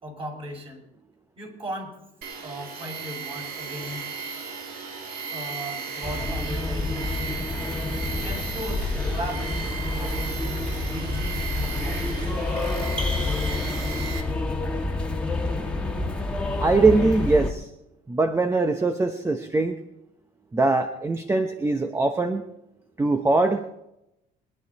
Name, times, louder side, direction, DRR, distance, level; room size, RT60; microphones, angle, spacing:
voice 1, 0.0-0.8 1.4-2.0 2.4-4.1 5.3-7.4 8.2-10.4 10.9-12.4, equal, 35° right, 0 dB, 6.3 m, -37 dB
Tools, 2.2-14.2, right 5 dB, 65° right, 2.7 m, -36 dB
sound 1, 6.0-17.5, left 2 dB, 5° left, 1.7 m, -28 dB
voice 2, 16.6-17.7 18.1-19.8 20.5-22.4 23.0-23.7, right 3 dB, 15° right, 7 dB, 0.9 m, -22 dB
23.0 x 10.5 x 4.2 m, 0.86 s
cardioid pair, 110°, 17 cm